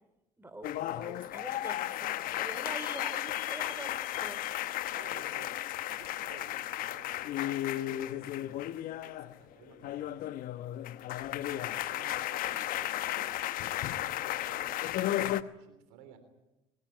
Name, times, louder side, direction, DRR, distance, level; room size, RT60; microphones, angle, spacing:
voice 1, 0.4-4.4, right 2 dB, 15° right, 12 dB, 3.4 m, -45 dB
sound 1, 0.6-9.4 9.7-15.4, left 14 dB, 65° left, 1.0 m, -34 dB
voice 2, 4.9-10.3 11.0-16.2, right 7 dB, 80° right, 9 dB, 3.5 m, -55 dB
21.5 x 19.5 x 9.3 m, 0.95 s
hypercardioid pair, 60°, 16 cm